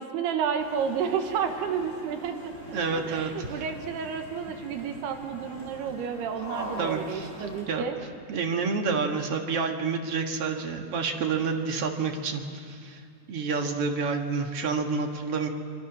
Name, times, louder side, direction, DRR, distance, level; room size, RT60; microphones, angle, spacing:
voice 1, 0.0-2.4 2.7-8.0, right 7 dB, 75° right, 6 dB, 3.2 m, -31 dB
sound 1, 0.6-7.6, left 1 dB, 15° left, 6.1 m, -42 dB
voice 2, 2.7-3.5 6.8-7.3 7.7-7.9 8.3-13.0 13.3-15.5, right 5 dB, 50° right, 3 dB, 1.8 m, -29 dB
25.5 x 24.0 x 6.2 m, 2.4 s
omnidirectional pair, 4.8 m